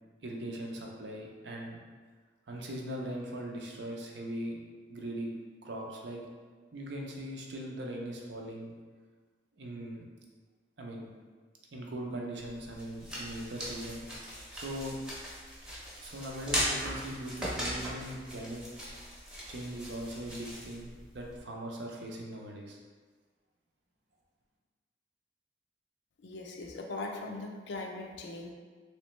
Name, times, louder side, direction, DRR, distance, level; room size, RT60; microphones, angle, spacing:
voice 1, 0.2-1.8 2.5-4.6 4.9-5.3 5.6-6.2 6.7-8.7 9.6-10.1 10.8-11.1 11.7-14.0 14.5-14.9 16.0-18.6 19.5-22.8, right 1 dB, 80° right, 0 dB, 0.6 m, -40 dB
sound 1, 12.4-21.4, equal, 5° right, 0.7 m, -39 dB
voice 2, 26.2-28.5, left 2 dB, 90° left, 1 dB, 0.4 m, -40 dB
3.2 x 3.1 x 3.1 m, 1.5 s
head